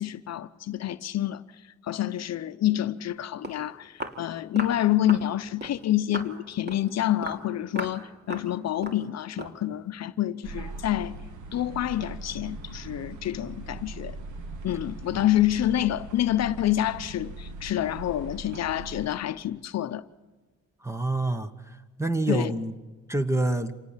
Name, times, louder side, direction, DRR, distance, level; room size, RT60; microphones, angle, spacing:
voice 1, 0.0-1.4 1.8-11.2 11.5-14.2 14.6-20.0 22.3-22.5, left 12 dB, 60° left, 0.8 m, -27 dB
Walk footsteps, 3.1-3.2 3.4-3.6 4.0-4.2 4.6-4.8 5.1-5.3 5.6-5.8 6.1-6.3 6.7-6.9 7.2-7.4 7.8-8.0 8.3-8.5 8.8-9.0 9.4-9.6, right 2 dB, 35° right, 2.7 m, -36 dB
sound 1, 10.4-19.1, right 2 dB, 75° right, 2.0 m, -40 dB
voice 2, 20.8-21.5 22.0-22.8 23.1-23.7, right 2 dB, 10° right, 1.2 m, -26 dB
26.5 x 19.0 x 7.3 m
cardioid pair, 90°, 30 cm